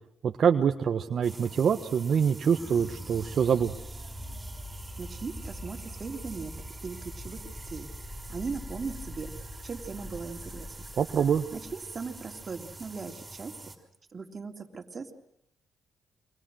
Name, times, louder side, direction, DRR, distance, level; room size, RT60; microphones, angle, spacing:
voice 1, 0.2-3.7 11.0-11.5, right 7 dB, 55° right, 5 dB, 1.3 m, -25 dB
sound 1, 1.2-13.8, right 2 dB, 20° right, 5.7 m, -46 dB
sound 2, 2.5-13.2, equal, ahead, 3.2 m, -43 dB
voice 2, 5.0-6.5 6.8-7.9 8.3-9.3 9.6-10.9 11.5-13.7 14.1-15.1, right 4 dB, 35° right, 3 dB, 3.3 m, -39 dB
30.0 x 25.0 x 6.4 m, 0.78 s
cardioid pair, 90°, 0 cm